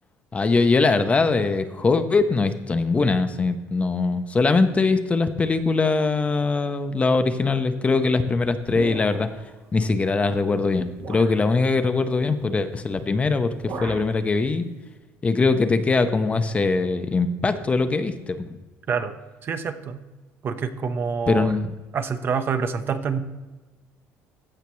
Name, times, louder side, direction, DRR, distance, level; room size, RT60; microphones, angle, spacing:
voice 1, 0.3-9.3 9.7-14.6 15.2-18.6 21.3-21.7, left 3 dB, 20° left, 9 dB, 0.6 m, -22 dB
sound 1, 8.7-9.4 10.3-10.4 11.0-11.4 12.8-13.1 13.3-14.2, right 3 dB, 65° right, 2.7 m, -36 dB
voice 2, 19.4-20.0 20.4-21.5 21.9-23.2, right 6 dB, 40° right, 10 dB, 0.6 m, -26 dB
15.0 x 5.7 x 3.1 m, 1.2 s
cardioid pair, 120°, 6 cm